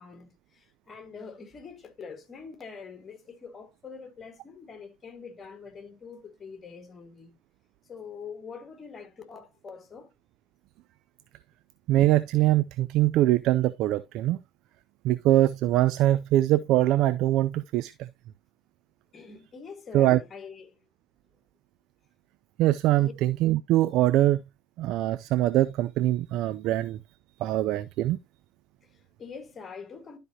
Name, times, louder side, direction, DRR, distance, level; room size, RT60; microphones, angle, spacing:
voice 1, 0.0-7.3 7.8-10.1 19.1-20.8 23.0-23.1 28.8-30.2, left 5 dB, 25° left, 1.8 m, -44 dB
voice 2, 11.9-14.4 15.0-18.1 19.9-20.2 22.6-24.4 24.8-27.0 27.4-28.2, right 14 dB, 50° right, 0.4 m, -23 dB
12.0 x 5.0 x 2.8 m
figure-of-eight pair, 75°, 0 cm